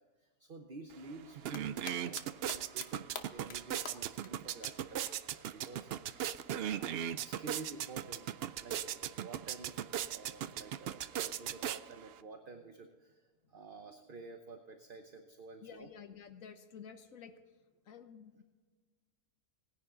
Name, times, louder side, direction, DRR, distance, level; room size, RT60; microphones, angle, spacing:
voice 1, 0.0-5.9 6.6-8.3 8.6-15.9, right 3 dB, 40° right, 5 dB, 0.9 m, -51 dB
sound 1, 0.9-1.0 1.3-12.2, right 10 dB, 75° right, 0.5 m, -39 dB
sound 2, 1.3-2.2 2.5-2.9 3.2-3.6 3.9-4.0 4.2-4.3 4.6-4.7 5.1-5.2 6.7-6.8, left 5 dB, 50° left, 1.1 m, -44 dB
voice 2, 15.6-17.3 17.8-18.4, left 7 dB, 65° left, 8 dB, 1.4 m, -51 dB
18.5 x 10.5 x 3.8 m, 1.4 s
omnidirectional pair, 1.6 m